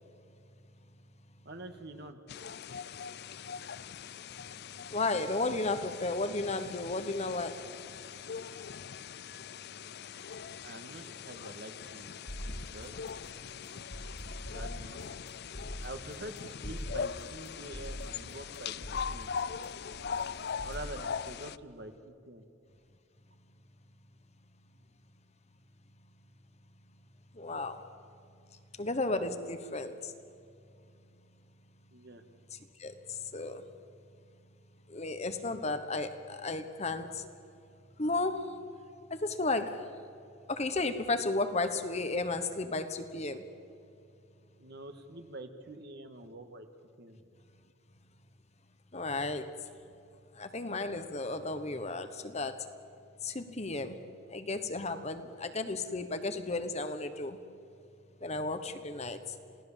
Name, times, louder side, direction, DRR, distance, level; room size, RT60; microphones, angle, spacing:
voice 1, 1.5-2.2 10.6-12.2 12.5-13.0 14.5-15.0 15.8-19.3 20.6-22.5 31.9-32.2 44.6-46.7 47.0-47.2, right 1 dB, 50° right, 7 dB, 1.7 m, -46 dB
sound 1, 2.3-21.6, left 6 dB, 50° left, 0.5 m, -41 dB
voice 2, 4.9-7.6 27.4-27.8 28.8-30.1 32.8-32.9 33.3-33.6 34.9-37.2 38.0-38.6 39.1-39.8 40.5-43.4 48.9-49.5 50.4-52.7 53.2-54.0 54.3-57.4 58.2-59.2, left 2 dB, 30° left, 9 dB, 1.1 m, -33 dB
sound 2, 12.3-21.0, equal, 80° left, 5.2 m, -43 dB
28.0 x 17.5 x 7.4 m, 2.6 s
head